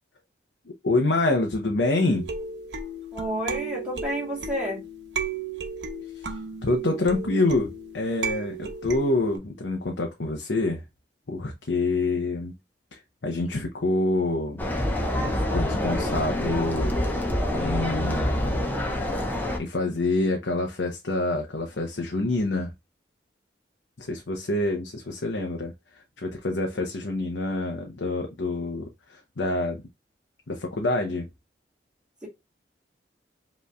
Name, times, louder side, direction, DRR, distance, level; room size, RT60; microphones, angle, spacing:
voice 1, 0.8-2.3 6.1-6.3 6.6-10.8 11.3-12.5 12.9-14.6 15.2-16.9 17.5-18.7 19.6-22.7 24.0-25.7 26.2-29.8 30.5-31.3, left 2 dB, 80° left, 0.8 m, -27 dB
sound 1, 2.1-9.4, right 4 dB, 80° right, 0.9 m, -34 dB
voice 2, 3.1-4.8, equal, 5° right, 2.3 m, -30 dB
sound 2, 14.6-19.6, left 1 dB, 10° left, 0.8 m, -26 dB
5.3 x 3.2 x 2.3 m
head